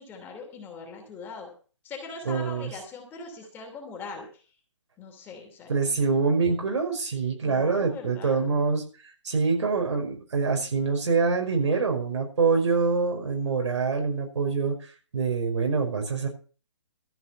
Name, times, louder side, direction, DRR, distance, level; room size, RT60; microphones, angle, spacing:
voice 1, 0.0-1.5 1.8-4.4 5.0-5.7 7.4-8.4, left 4 dB, 15° left, 2 dB, 2.7 m, -41 dB
voice 2, 2.3-2.7 5.7-8.8 9.2-14.8 15.1-16.3, right 4 dB, 75° right, 2 dB, 5.4 m, -25 dB
14.0 x 5.8 x 8.5 m, 0.38 s
hypercardioid pair, 165°, 15 cm